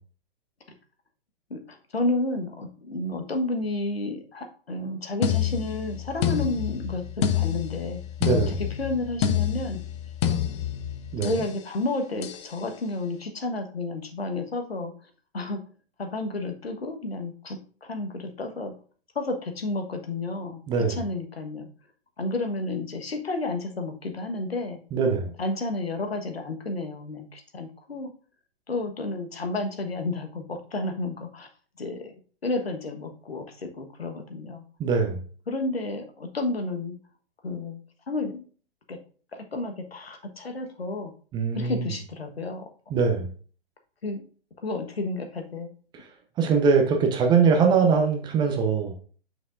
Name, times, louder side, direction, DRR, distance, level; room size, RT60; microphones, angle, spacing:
voice 1, 1.5-8.0 8.5-9.8 11.2-14.9 15.3-15.6 16.0-18.7 19.1-20.6 20.9-21.7 22.2-24.8 25.4-28.1 28.7-31.5 31.8-32.1 32.4-34.6 35.5-36.9 37.4-37.8 38.1-38.5 38.9-39.0 39.3-41.1 41.5-42.7 44.0-44.2 44.6-45.7, left 2 dB, 75° left, 5 dB, 1.3 m, -31 dB
sound 1, 5.2-11.5 12.2-12.5, left 9 dB, 30° left, 0.6 m, -28 dB
voice 2, 8.2-8.6 11.1-11.3 20.7-21.0 24.9-25.3 34.8-35.2 41.3-41.8 42.9-43.3 46.4-48.9, right 5 dB, 15° right, 4 dB, 0.7 m, -22 dB
7.4 x 6.1 x 2.5 m, 0.41 s
figure-of-eight pair, 120°, 31 cm